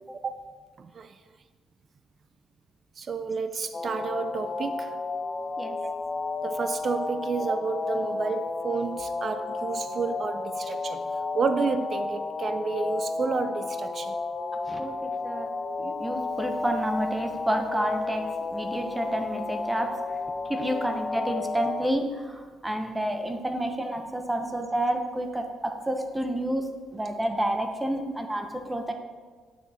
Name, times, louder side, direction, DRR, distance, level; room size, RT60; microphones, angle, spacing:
voice 1, 0.8-1.1 3.0-5.0 5.8-5.9 6.4-11.1 11.3-14.1 24.4-24.5, right 5 dB, 45° right, 10 dB, 0.4 m, -30 dB
sound 1, 3.7-21.9, left 3 dB, 30° left, 0.5 m, -32 dB
voice 2, 14.7-15.5 15.8-20.0 20.5-28.9, right 1 dB, 10° right, 5 dB, 0.9 m, -30 dB
9.3 x 6.3 x 4.2 m, 1.5 s
cardioid pair, 90°, 0 cm